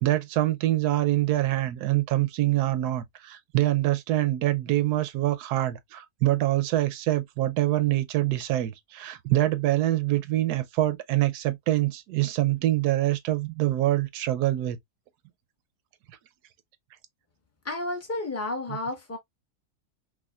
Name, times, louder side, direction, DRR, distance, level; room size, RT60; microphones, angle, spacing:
voice 1, 0.0-14.8, right 15 dB, 85° right, 1.1 m, -25 dB
voice 2, 17.6-19.2, left 2 dB, 15° left, 0.6 m, -31 dB
4.8 x 2.2 x 2.3 m
omnidirectional pair, 1.7 m